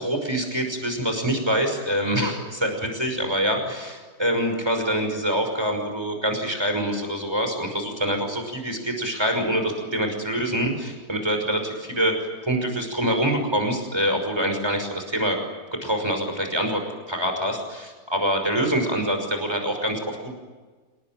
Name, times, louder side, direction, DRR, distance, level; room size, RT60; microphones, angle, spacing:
voice 1, 0.0-12.1 12.4-15.4 15.8-16.8 17.1-20.3, equal, 15° right, 4 dB, 5.8 m, -25 dB
27.5 x 20.0 x 9.2 m, 1.3 s
omnidirectional pair, 1.9 m